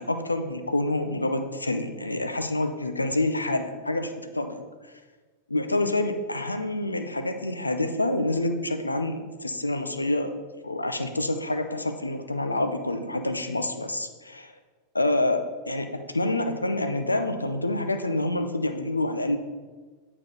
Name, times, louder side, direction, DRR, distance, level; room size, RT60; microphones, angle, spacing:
voice 1, 0.0-4.6 5.5-10.3 10.6-14.5 14.9-19.4, left 2 dB, 80° left, 7 dB, 0.6 m, -27 dB
8.7 x 4.3 x 4.3 m, 1.4 s
figure-of-eight pair, 90°, 0 cm